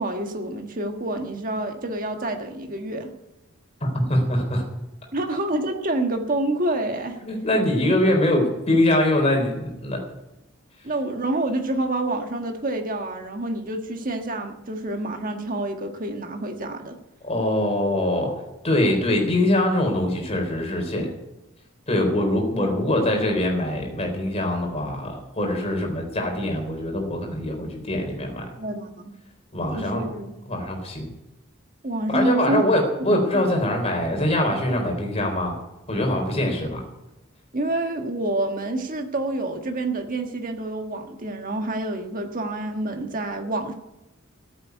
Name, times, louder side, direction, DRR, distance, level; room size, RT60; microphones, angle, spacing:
voice 1, 0.0-3.1 5.1-7.2 10.8-17.0 28.6-29.1 29.7-30.3 31.8-32.6 33.1-33.5 37.5-43.7, right 2 dB, 40° right, 4 dB, 1.5 m, -27 dB
voice 2, 3.8-4.6 7.2-10.0 17.2-18.3 18.6-21.1 21.9-28.4 29.5-30.1 30.5-31.1 32.1-35.6 35.9-36.8, left 1 dB, 30° left, 2 dB, 3.9 m, -23 dB
14.5 x 8.2 x 9.3 m, 0.96 s
head